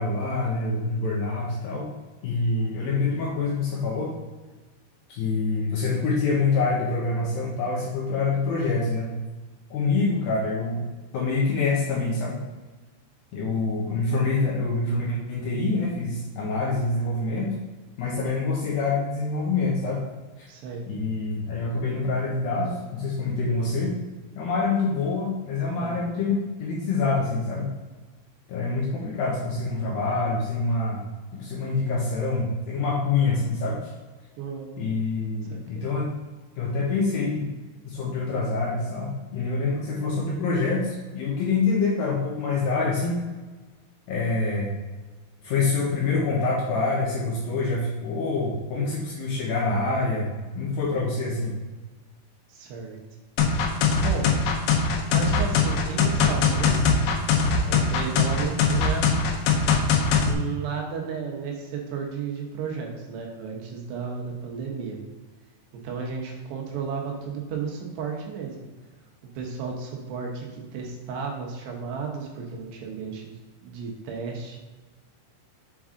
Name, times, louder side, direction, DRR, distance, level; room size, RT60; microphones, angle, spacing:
voice 1, 0.0-1.9 2.2-4.1 5.1-9.1 9.7-10.8 11.1-12.4 13.3-17.5 18.0-20.0 20.4-20.5 20.9-23.9 24.4-27.7 28.5-31.0 31.3-33.9 34.8-36.1 36.6-37.5 37.9-43.2 44.1-44.7 45.4-50.3 50.6-51.6, left 3 dB, 70° left, -3 dB, 2.3 m, -26 dB
voice 2, 20.5-20.8 25.7-26.1 34.4-34.9 35.5-35.9 52.5-53.0 54.0-54.3 55.1-57.1 57.6-59.1 60.3-65.0 65.7-68.6 69.4-73.3 73.6-74.6, right 5 dB, 75° right, 0 dB, 3.0 m, -33 dB
sound 1, 53.4-60.3, left 5 dB, 90° left, 3.1 m, -21 dB
7.3 x 4.7 x 3.7 m, 1.3 s
omnidirectional pair, 5.1 m